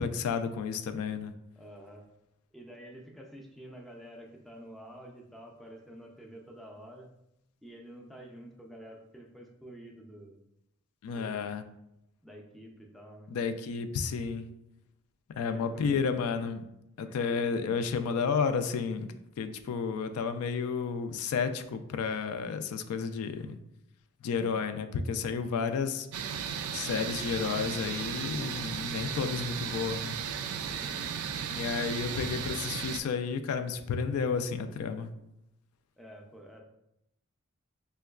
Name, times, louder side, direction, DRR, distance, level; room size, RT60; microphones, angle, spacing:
voice 1, 0.0-1.3 11.0-11.6 13.3-14.5 15.4-16.7 17.0-19.1 19.4-23.6 24.2-26.1 26.7-30.1 31.5-35.1, left 5 dB, 80° left, 9 dB, 0.3 m, -31 dB
voice 2, 1.6-2.1 2.5-7.1 7.6-10.4 11.1-11.6 12.2-13.3 15.4-15.9 30.6-31.2 36.0-36.6, equal, ahead, 0 dB, 0.3 m, -49 dB
sound 1, 26.1-33.0, right 7 dB, 85° right, 0.3 m, -35 dB
5.2 x 2.2 x 2.3 m, 0.83 s
head